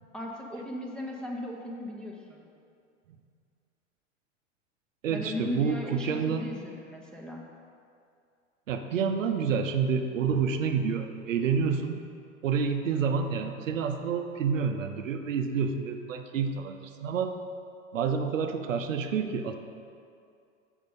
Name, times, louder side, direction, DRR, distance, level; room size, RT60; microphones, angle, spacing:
voice 1, 0.1-2.4 5.1-7.4, left 1 dB, ahead, -2 dB, 0.9 m, -37 dB
voice 2, 5.0-6.5 8.7-12.1 12.4-17.3 17.9-19.5, right 6 dB, 75° right, 6 dB, 0.6 m, -28 dB
6.6 x 5.4 x 5.2 m, 2.4 s
hypercardioid pair, 95°, 39 cm